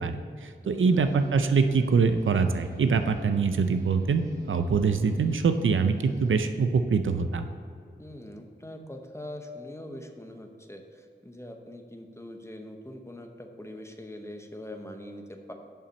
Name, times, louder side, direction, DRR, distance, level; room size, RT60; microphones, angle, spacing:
voice 1, 0.0-7.5, right 5 dB, 85° right, 8 dB, 0.5 m, -24 dB
voice 2, 0.6-1.2 8.0-15.5, left 1 dB, 15° left, 4 dB, 0.8 m, -43 dB
sound 1, 0.7-6.5, equal, 15° right, 1.7 m, -48 dB
7.1 x 5.8 x 5.3 m, 2.4 s
wide cardioid pair, 75°, 20 cm